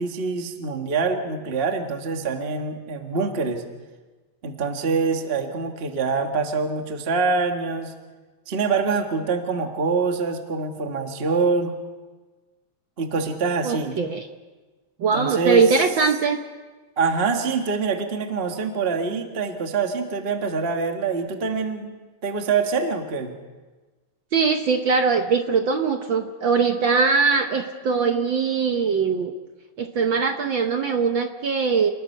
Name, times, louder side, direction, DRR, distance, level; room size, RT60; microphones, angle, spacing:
voice 1, 0.0-3.6 4.4-7.9 8.5-11.7 13.0-14.0 15.1-15.8 17.0-21.9 22.2-23.3, right 4 dB, 30° right, 4 dB, 1.3 m, -25 dB
voice 2, 13.6-14.3 15.0-16.4 24.3-29.3 29.8-31.9, right 5 dB, 65° right, 6 dB, 1.2 m, -21 dB
29.0 x 20.0 x 5.6 m, 1.3 s
omnidirectional pair, 3.4 m